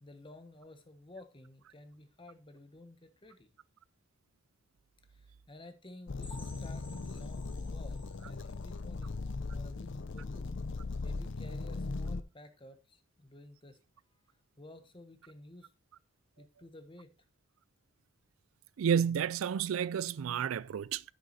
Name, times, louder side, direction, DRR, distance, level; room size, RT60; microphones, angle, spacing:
voice 1, 0.0-3.5 5.1-10.6 11.0-13.8 14.1-14.2 14.6-15.7 16.4-17.1, left 2 dB, 25° left, 1.2 m, -53 dB
sound 1, 6.1-12.2, left 3 dB, 65° left, 0.6 m, -38 dB
sound 2, 6.2-9.8 10.2-10.4 10.8-10.9 11.3-11.4, left 1 dB, 10° left, 2.0 m, -57 dB
voice 2, 18.8-21.0, right 8 dB, 90° right, 0.4 m, -30 dB
9.5 x 6.5 x 4.1 m
head